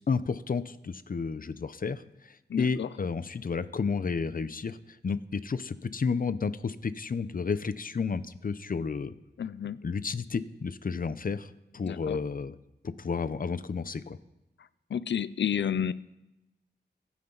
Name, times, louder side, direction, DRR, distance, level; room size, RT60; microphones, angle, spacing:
voice 1, 0.1-2.0 2.6-4.8 5.0-9.1 9.8-12.6 12.8-14.2, left 5 dB, 50° left, 14 dB, 0.7 m, -31 dB
voice 2, 2.5-2.9 9.4-9.8 11.8-12.2 14.9-15.9, left 8 dB, 85° left, 16 dB, 0.5 m, -30 dB
25.0 x 9.5 x 4.0 m, 0.95 s
wide cardioid pair, 90°, 18 cm